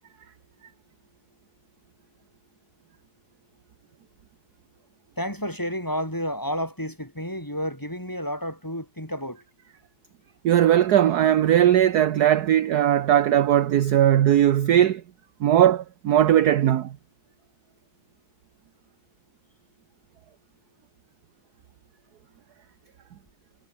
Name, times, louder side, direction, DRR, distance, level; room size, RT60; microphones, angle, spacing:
voice 1, 5.2-9.4, equal, 10° left, 7.8 m, -31 dB
voice 2, 10.4-15.0 15.4-16.9, right 11 dB, 60° right, 1.3 m, -19 dB
omnidirectional pair, 2.2 m